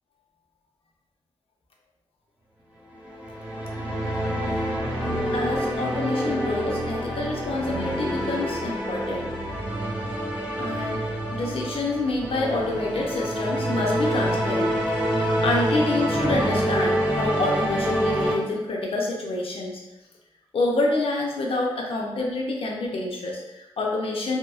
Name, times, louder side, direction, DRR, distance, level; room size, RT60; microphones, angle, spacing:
sound 1, 2.9-18.3, equal, 10° right, 0.9 m, -27 dB
voice 1, 5.3-9.3 10.6-14.8 15.4-19.8 20.5-24.4, left 2 dB, 70° left, -1 dB, 0.6 m, -27 dB
2.8 x 2.6 x 2.4 m, 0.98 s
wide cardioid pair, 90°, 10 cm